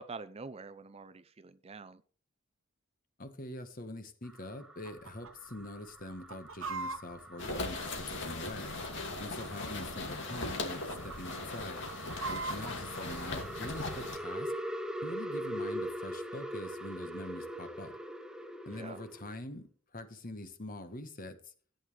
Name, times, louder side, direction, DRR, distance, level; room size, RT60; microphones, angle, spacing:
voice 1, 0.0-2.0 18.7-19.0, right 4 dB, 30° right, 0.5 m, -46 dB
voice 2, 3.2-8.8 9.2-11.9 12.3-14.5 15.0-17.9 18.6-21.4, left 1 dB, 45° left, 1.5 m, -44 dB
sound 1, 4.2-19.4, equal, 5° right, 0.9 m, -43 dB
Chicken rooster, 4.8-5.3 5.6-5.7 6.1-8.4 9.1-9.9 10.2-10.4 10.7-11.2 11.6-12.8, right 3 dB, 80° right, 1.0 m, -40 dB
sound 2, 7.4-14.2, left 2 dB, 60° left, 2.4 m, -39 dB
14.5 x 9.2 x 3.4 m
head